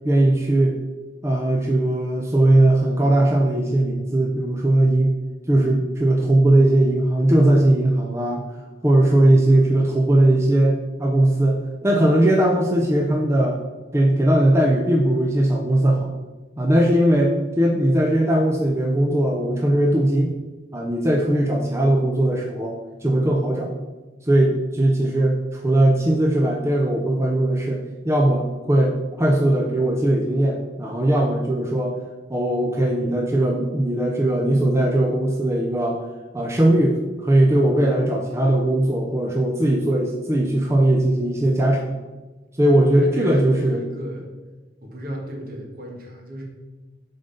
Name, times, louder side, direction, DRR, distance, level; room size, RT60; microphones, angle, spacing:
voice 1, 0.0-0.8 1.2-5.1 5.5-8.4 8.8-13.6 13.9-16.1 16.6-20.3 20.7-23.7 24.3-32.0 32.3-36.0 36.3-42.0 42.6-43.8, right 1 dB, 15° right, 0 dB, 0.5 m, -19 dB
voice 2, 43.0-44.3 44.8-46.4, equal, 55° right, 0 dB, 1.6 m, -34 dB
6.9 x 3.9 x 5.4 m, 1.2 s
head